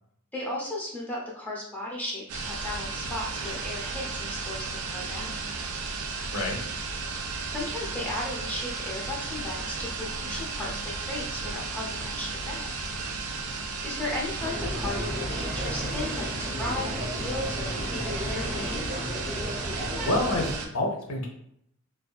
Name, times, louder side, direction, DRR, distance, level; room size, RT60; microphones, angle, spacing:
voice 1, 0.3-5.4 7.5-12.7 13.8-18.8, left 2 dB, 10° left, -4 dB, 0.5 m, -35 dB
sound 1, 2.3-20.7, right 3 dB, 80° right, 0.4 m, -34 dB
sound 2, 14.4-20.6, equal, 35° right, 0.7 m, -34 dB
voice 2, 20.0-21.3, left 1 dB, 80° left, 1 dB, 0.6 m, -27 dB
2.5 x 2.2 x 2.2 m, 0.73 s
head